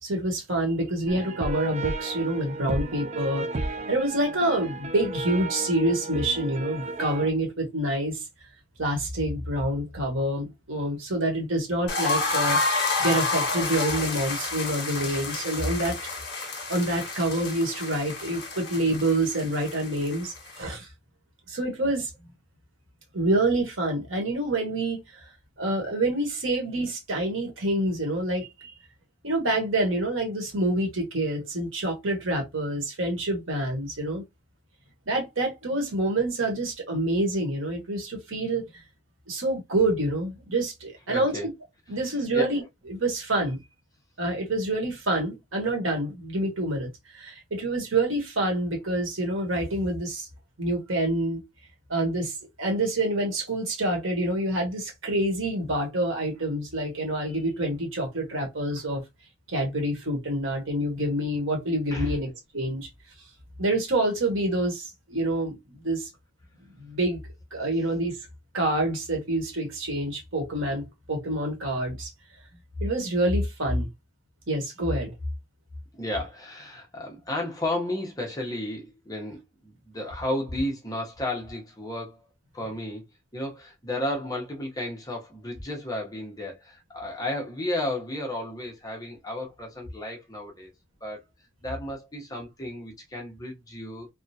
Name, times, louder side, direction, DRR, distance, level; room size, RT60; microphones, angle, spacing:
voice 1, 0.0-8.2 8.8-12.6 13.0-16.0 16.7-20.9 21.5-22.1 23.1-25.2 25.6-28.7 29.2-34.2 35.1-38.6 39.3-41.4 41.9-42.6 42.9-43.6 44.2-50.3 50.6-51.4 51.9-59.0 59.5-62.3 62.5-62.9 63.6-65.6 65.8-66.1 66.8-67.2 67.5-68.2 68.5-72.1 72.8-73.9 74.5-75.1, right 1 dB, 85° right, 1.4 m, -27 dB
sound 1, 1.1-7.3, right 2 dB, 35° right, 0.4 m, -33 dB
sound 2, 11.9-20.6, left 3 dB, 55° left, 1.3 m, -29 dB
voice 2, 41.1-41.5 42.3-42.5 61.9-62.2 76.0-83.0 83.3-90.7 91.0-91.2 91.6-94.1, left 1 dB, 20° left, 0.9 m, -33 dB
3.6 x 2.3 x 2.7 m
head